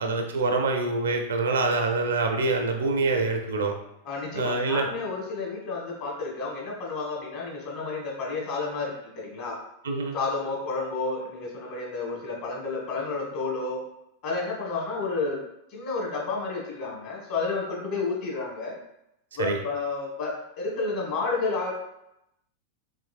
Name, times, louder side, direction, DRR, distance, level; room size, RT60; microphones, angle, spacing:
voice 1, 0.0-3.7 4.3-4.9 9.8-10.2 19.4-19.6, right 3 dB, 65° right, 4 dB, 0.5 m, -25 dB
voice 2, 4.0-9.6 10.1-13.8 14.2-15.4 15.7-18.8 19.4-21.7, left 3 dB, 40° left, -2 dB, 1.3 m, -31 dB
3.6 x 3.0 x 2.4 m, 0.82 s
figure-of-eight pair, 90°, 0 cm